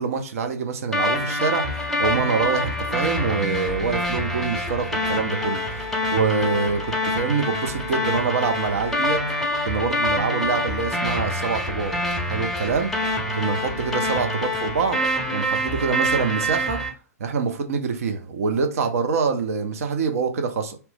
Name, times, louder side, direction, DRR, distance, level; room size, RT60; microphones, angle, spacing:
voice 1, 0.0-9.2 9.6-11.9 12.2-12.9 13.3-15.0 15.3-16.8 17.2-20.8, right 5 dB, 60° right, 0.6 m, -25 dB
sound 1, 0.9-16.9, left 1 dB, ahead, 0.6 m, -26 dB
2.9 x 2.0 x 3.3 m
figure-of-eight pair, 115°, 9 cm